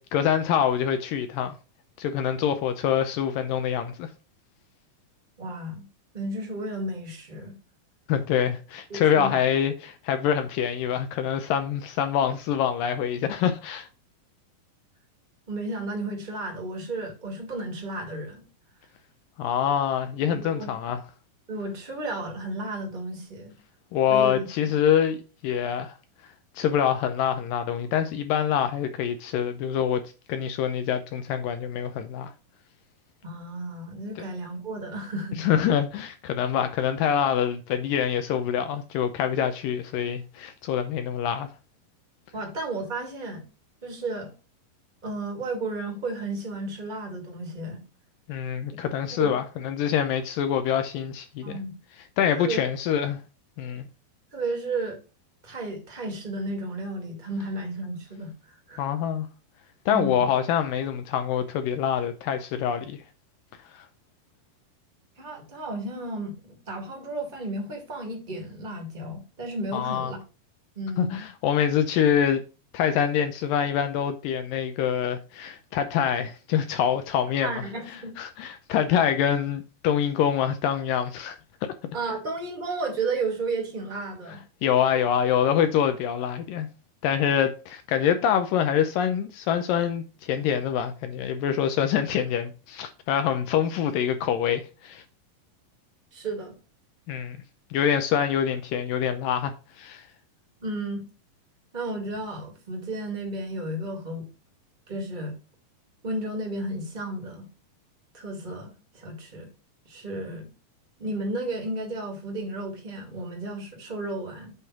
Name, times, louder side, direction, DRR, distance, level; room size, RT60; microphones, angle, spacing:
voice 1, 0.0-1.5 2.0-4.1 8.1-13.9 19.4-21.0 23.9-25.2 25.4-26.0 26.6-32.3 34.2-34.3 35.4-41.5 48.3-51.6 52.2-53.2 53.6-53.9 58.8-59.3 59.9-63.0 63.7-63.8 69.7-70.1 71.0-72.4 72.7-81.4 84.6-86.7 87.0-95.0 97.1-97.4 97.7-100.1, left 9 dB, 80° left, 2.1 m, -25 dB
voice 2, 5.4-5.8 6.1-7.5 8.9-9.4 15.5-18.4 20.3-20.7 21.5-23.5 24.1-24.3 33.2-35.4 42.3-43.4 43.8-44.3 45.0-47.8 48.7-48.8 49.2-49.3 51.4-51.7 52.3-52.6 54.3-55.0 55.4-58.8 59.9-60.3 65.2-70.2 70.7-71.1 77.4-78.1 81.9-84.4 96.1-96.5 100.6-101.0 101.7-104.3 104.9-105.3 106.0-107.5 108.1-109.5 109.8-110.5 111.0-114.5, right 2 dB, 20° right, 1.2 m, -33 dB
8.4 x 3.7 x 5.8 m
omnidirectional pair, 4.3 m